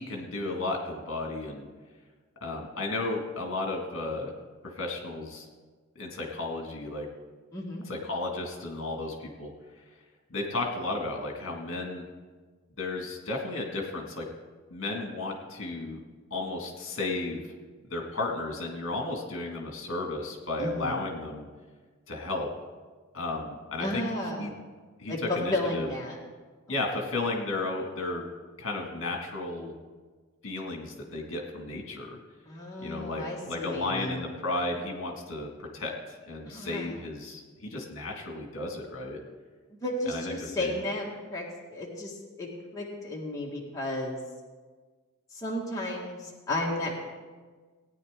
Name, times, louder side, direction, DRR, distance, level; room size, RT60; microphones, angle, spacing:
voice 1, 0.0-1.7 2.4-4.3 4.8-5.5 6.0-7.1 7.9-9.5 10.3-12.0 12.8-14.3 14.7-16.0 16.3-17.4 17.9-21.5 22.1-22.5 23.1-24.0 24.4-24.5 25.0-25.9 26.7-28.3 28.6-29.7 30.4-32.2 32.8-39.2 40.1-40.8, left 2 dB, 60° left, 1 dB, 2.0 m, -33 dB
voice 2, 7.5-7.8 20.6-21.0 23.8-24.4 25.1-25.2 25.5-26.2 26.9-27.0 32.5-34.2 36.4-36.9 39.8-41.4 41.7-44.2 45.3-47.0, left 1 dB, 15° left, -4 dB, 1.7 m, -33 dB
17.5 x 9.7 x 3.7 m, 1.4 s
head